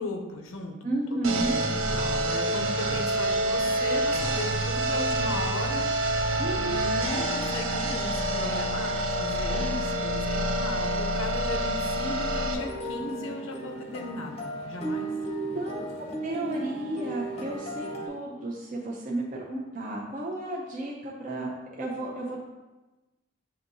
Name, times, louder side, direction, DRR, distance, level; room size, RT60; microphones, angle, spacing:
voice 1, 0.0-0.8 1.2-5.9 6.6-15.1, left 2 dB, 85° left, 3 dB, 0.6 m, -36 dB
voice 2, 0.8-1.6 6.4-6.9 15.2-15.3 15.5-22.4, right 1 dB, 40° right, -4 dB, 0.5 m, -33 dB
sound 1, 1.2-12.5, right 1 dB, 90° right, 0.6 m, -27 dB
sound 2, 12.5-18.1, right 2 dB, 30° left, 0.6 m, -35 dB
7.4 x 2.7 x 2.7 m, 1.1 s
head